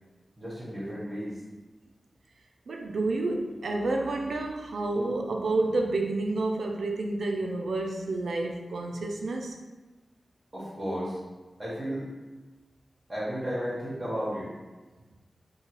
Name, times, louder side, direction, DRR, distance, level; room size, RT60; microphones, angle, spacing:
voice 1, 0.4-1.4 10.5-11.2 11.6-12.0 13.1-14.5, equal, 35° right, -9 dB, 1.0 m, -33 dB
voice 2, 2.7-9.6, right 2 dB, 85° right, 2 dB, 0.3 m, -29 dB
2.8 x 2.2 x 2.9 m, 1.2 s
cardioid pair, 45°, 0 cm